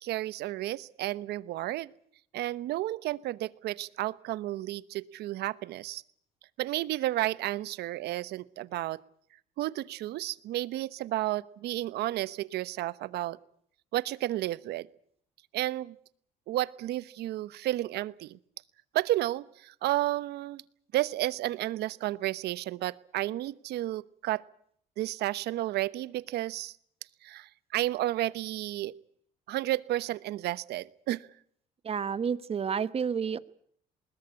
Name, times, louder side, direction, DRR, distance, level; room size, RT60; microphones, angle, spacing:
voice 1, 0.0-1.9 2.3-6.0 6.6-9.0 9.6-13.4 13.9-14.9 15.5-15.9 16.5-18.4 18.9-20.6 20.9-24.4 25.0-26.8 27.2-28.9 29.5-31.3, right 15 dB, 75° right, 17 dB, 1.0 m, -32 dB
voice 2, 31.8-33.4, right 7 dB, 35° right, 15 dB, 1.1 m, -30 dB
21.0 x 18.0 x 9.8 m, 0.64 s
cardioid pair, 110°, 17 cm